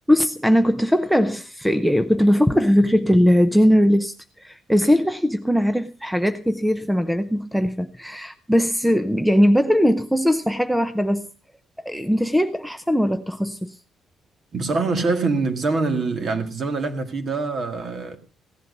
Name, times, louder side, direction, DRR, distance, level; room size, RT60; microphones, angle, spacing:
voice 1, 0.1-11.3 11.8-13.8, equal, ahead, 0.6 m, -20 dB
voice 2, 14.5-18.2, right 3 dB, 35° right, 1.9 m, -24 dB
16.5 x 11.0 x 5.3 m
cardioid pair, 170°, 0 cm